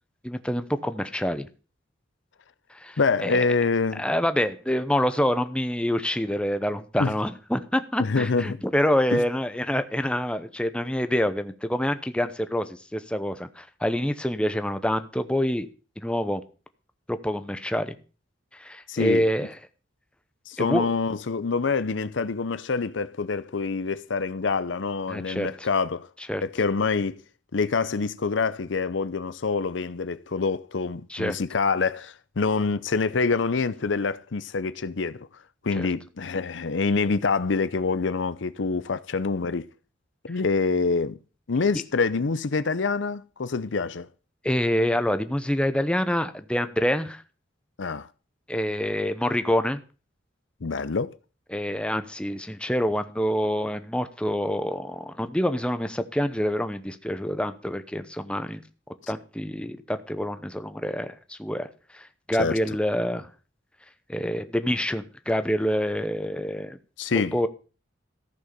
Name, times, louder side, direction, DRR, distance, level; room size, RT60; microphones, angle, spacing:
voice 1, 0.2-1.5 2.8-3.4 4.0-15.7 16.0-16.4 17.1-17.9 18.5-19.5 20.6-20.9 25.1-25.7 26.3-26.4 31.1-31.4 35.8-35.9 44.4-47.2 48.5-49.8 51.5-58.6 59.1-61.7 61.9-63.3 64.1-66.8 67.1-67.5, equal, 5° left, 0.9 m, -26 dB
voice 2, 3.0-4.0 7.0-7.1 8.0-8.6 9.1-9.2 18.9-19.3 20.5-26.1 26.4-27.2 27.5-35.3 35.6-39.7 40.3-41.2 41.5-44.1 47.8-48.1 50.6-51.1 62.4-62.6 67.0-67.4, left 4 dB, 75° left, 0.7 m, -26 dB
14.5 x 6.4 x 6.8 m
head